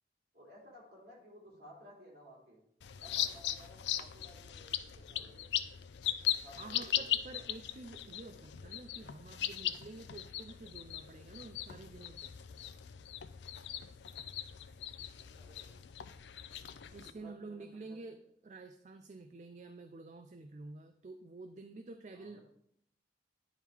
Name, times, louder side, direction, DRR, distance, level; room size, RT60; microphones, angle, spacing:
voice 1, 0.3-2.7 3.0-5.6 6.2-7.4 15.2-15.8 17.0-18.1 22.1-22.4, equal, 60° right, -4 dB, 3.0 m, -57 dB
sound 1, 2.8-17.1, left 11 dB, 85° left, 0.4 m, -39 dB
voice 2, 6.6-12.3 16.9-22.4, right 3 dB, 40° right, 7 dB, 0.4 m, -49 dB
9.9 x 3.6 x 4.5 m, 0.71 s
head